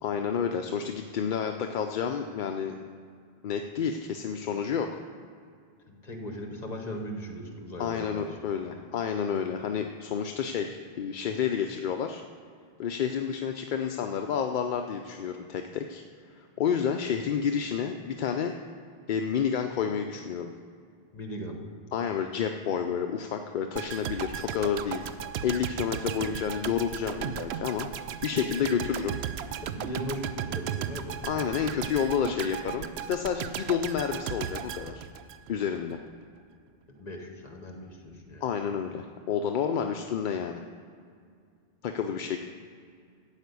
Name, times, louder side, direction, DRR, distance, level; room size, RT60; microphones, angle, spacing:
voice 1, 0.0-2.8 3.4-4.9 7.8-12.2 12.8-18.5 19.1-20.5 21.9-25.1 25.4-27.9 28.2-29.2 31.2-35.1 35.5-36.0 38.4-40.6 41.8-42.4, left 7 dB, 60° left, 5 dB, 0.6 m, -30 dB
voice 2, 5.9-8.4 21.1-21.6 29.6-31.3 37.0-38.4, equal, 45° left, 3 dB, 1.4 m, -38 dB
sound 1, 23.7-35.8 36.1-36.2, right 9 dB, 90° right, 0.8 m, -36 dB
12.5 x 5.1 x 8.3 m, 2.2 s
omnidirectional pair, 1.0 m